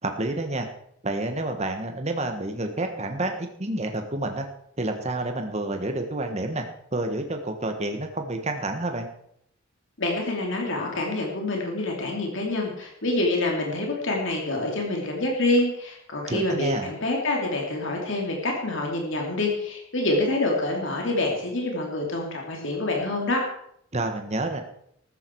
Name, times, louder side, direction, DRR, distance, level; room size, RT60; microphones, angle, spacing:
voice 1, 0.0-0.7 1.0-4.5 4.8-6.6 6.9-9.1 16.3-16.9 23.9-24.6, right 2 dB, 30° right, 5 dB, 1.4 m, -29 dB
voice 2, 10.0-23.4, left 2 dB, 60° left, 0 dB, 3.0 m, -26 dB
14.5 x 13.5 x 4.7 m, 0.69 s
head